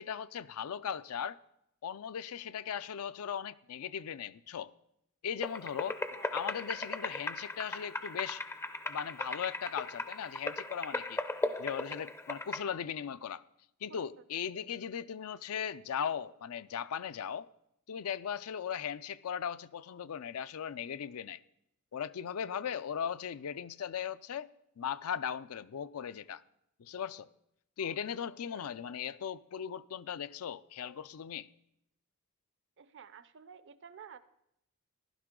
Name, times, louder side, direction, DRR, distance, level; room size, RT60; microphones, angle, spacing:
voice 1, 0.0-1.4 1.8-4.7 5.2-6.0 6.3-8.4 8.9-11.2 11.6-13.4 13.8-17.5 17.9-21.4 21.9-24.5 24.8-26.4 26.8-27.3 27.8-31.5, left 8 dB, 75° left, 0.4 m, -38 dB
sound 1, 5.4-12.6, left 2 dB, 10° left, 0.4 m, -38 dB
voice 2, 32.8-34.2, right 7 dB, 55° right, 0.6 m, -52 dB
15.0 x 11.5 x 3.7 m
head